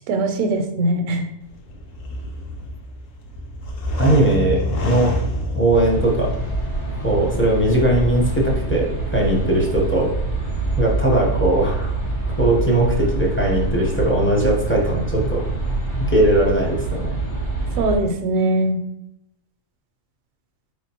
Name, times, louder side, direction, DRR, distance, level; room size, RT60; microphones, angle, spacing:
voice 1, 0.1-1.2 17.8-18.8, right 2 dB, 80° right, 6 dB, 1.0 m, -21 dB
sound 1, 1.4-9.9, left 1 dB, 70° left, 1.0 m, -29 dB
voice 2, 4.0-5.1 5.5-6.3 7.0-10.1 10.8-11.9 12.4-15.4 16.1-17.1, right 1 dB, 15° left, -3 dB, 0.6 m, -19 dB
sound 2, 5.7-18.0, right 2 dB, 45° left, 1.6 m, -25 dB
4.7 x 3.6 x 2.8 m, 0.81 s
omnidirectional pair, 1.4 m